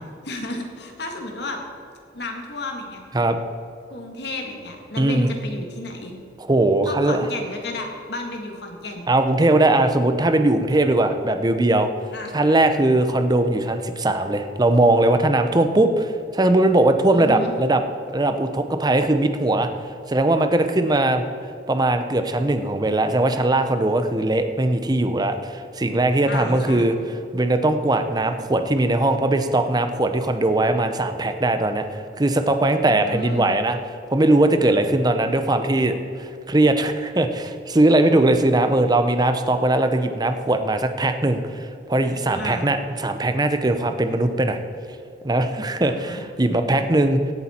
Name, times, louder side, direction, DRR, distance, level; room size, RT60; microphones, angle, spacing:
voice 1, 0.2-1.6 2.1-3.0 3.9-6.2 6.9-9.1 12.1-12.4 17.1-17.5 26.3-27.0 32.9-33.6 42.3-42.7 45.8-46.2 46.7-46.8, left 2 dB, 65° left, 2 dB, 1.8 m, -33 dB
voice 2, 5.0-5.4 6.5-7.2 9.1-11.9 12.3-17.8 18.1-19.7 20.1-21.2 21.7-26.9 27.3-33.8 34.1-44.6 45.2-47.2, right 2 dB, 25° right, 8 dB, 0.7 m, -20 dB
16.5 x 8.6 x 4.4 m, 2.5 s
head